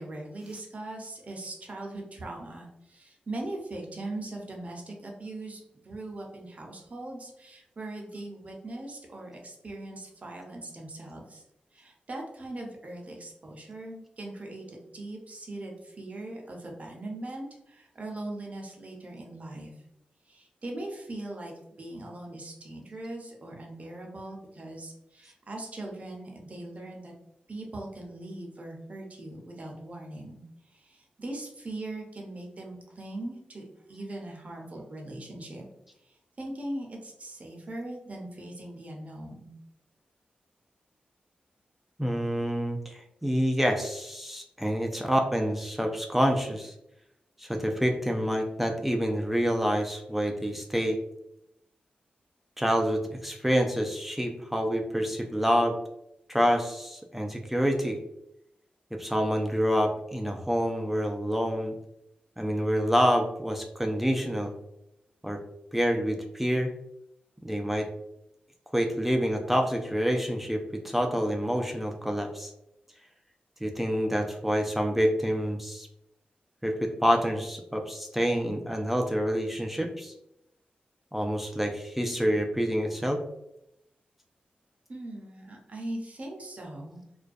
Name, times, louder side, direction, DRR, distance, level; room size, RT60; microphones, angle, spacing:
voice 1, 0.0-11.4 11.7-19.7 20.3-21.5 21.8-27.1 27.5-30.4 30.7-33.6 33.9-35.6 36.0-39.5 84.9-87.0, right 1 dB, 45° right, 0 dB, 0.6 m, -40 dB
voice 2, 42.0-46.7 47.4-51.0 52.6-55.8 56.3-58.0 58.9-61.7 62.4-64.5 65.2-65.4 65.7-66.7 67.4-67.9 68.7-72.5 73.6-75.9 76.6-80.1 81.1-83.2, equal, 5° right, 3 dB, 0.3 m, -27 dB
2.3 x 2.1 x 2.5 m, 0.81 s
cardioid pair, 70°, 3 cm